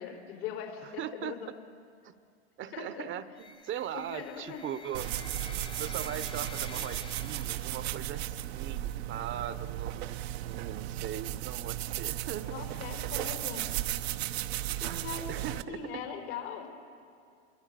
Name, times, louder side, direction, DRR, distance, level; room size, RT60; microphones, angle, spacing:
voice 1, 0.0-1.5 2.7-3.1 3.9-4.6 12.5-13.7 14.8-15.3 15.7-16.7, left 8 dB, 80° left, 2 dB, 4.8 m, -40 dB
voice 2, 0.8-1.5 2.0-2.1 2.6-5.1 5.8-12.6 13.7-13.8 15.3-15.8, right 10 dB, 40° right, 14 dB, 0.9 m, -40 dB
sound 1, 3.4-8.4, left 4 dB, 15° left, 0.8 m, -49 dB
sound 2, 4.9-15.6, right 14 dB, 80° right, 0.9 m, -35 dB
25.5 x 23.5 x 6.9 m, 2.3 s
supercardioid pair, 105°, 31 cm